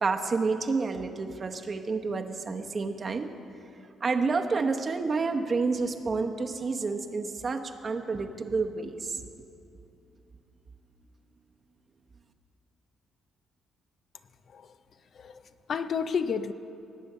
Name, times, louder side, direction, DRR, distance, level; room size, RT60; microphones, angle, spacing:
voice 1, 0.0-3.3 4.0-9.2, right 4 dB, 40° right, 5 dB, 1.0 m, -29 dB
voice 2, 15.7-16.5, left 6 dB, 55° left, 11 dB, 0.6 m, -31 dB
18.5 x 7.8 x 6.8 m, 2.7 s
cardioid pair, 90°, 0 cm